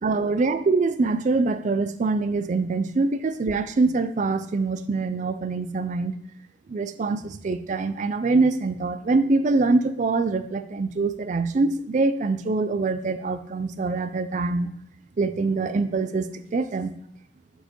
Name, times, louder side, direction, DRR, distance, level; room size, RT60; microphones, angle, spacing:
voice 1, 0.0-6.1 6.7-14.7 15.2-16.9, right 3 dB, 35° right, 11 dB, 0.3 m, -24 dB
7.8 x 4.5 x 3.0 m, 0.72 s
head